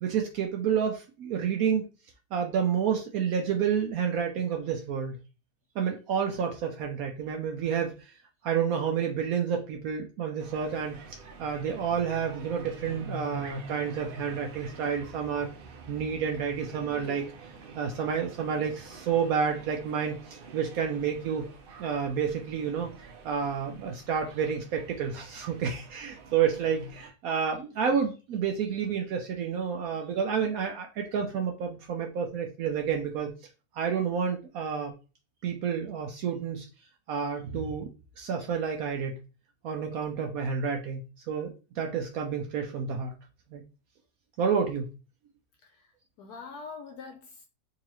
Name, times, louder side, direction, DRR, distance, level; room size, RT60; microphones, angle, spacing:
voice 1, 0.0-1.9 2.3-5.1 5.8-8.1 8.4-15.5 15.9-17.3 17.7-21.5 21.8-22.9 23.2-33.3 33.7-35.0 35.4-36.7 37.1-37.9 38.2-39.1 39.6-41.0 41.3-43.1 43.5-43.6 44.4-44.9, right 7 dB, 70° right, 0.9 m, -29 dB
sound 1, 10.4-27.1, right 3 dB, 90° right, 0.5 m, -46 dB
voice 2, 45.6-45.9 46.2-47.5, left 4 dB, 75° left, 1.0 m, -44 dB
3.8 x 2.8 x 3.0 m
omnidirectional pair, 1.8 m